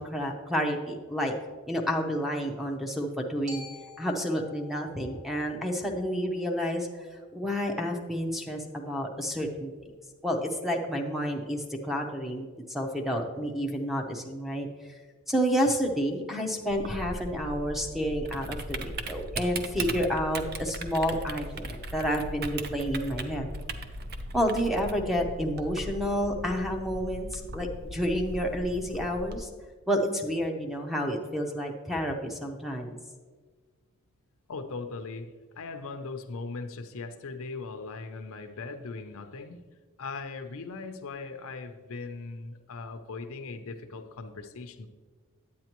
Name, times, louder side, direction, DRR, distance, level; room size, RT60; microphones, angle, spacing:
voice 1, 0.0-1.3 1.7-3.6 4.0-6.9 7.3-9.7 10.2-14.9 15.3-23.5 24.3-29.5 29.9-33.0, equal, ahead, 3 dB, 0.7 m, -30 dB
Glockenspiel, 3.5-7.6, left 2 dB, 85° right, 1.9 m, -50 dB
Typing, 16.7-29.4, right 1 dB, 45° right, 0.6 m, -38 dB
voice 2, 34.5-39.6 40.0-44.9, left 3 dB, 65° left, 7 dB, 0.6 m, -39 dB
9.3 x 8.6 x 3.0 m, 1.5 s
head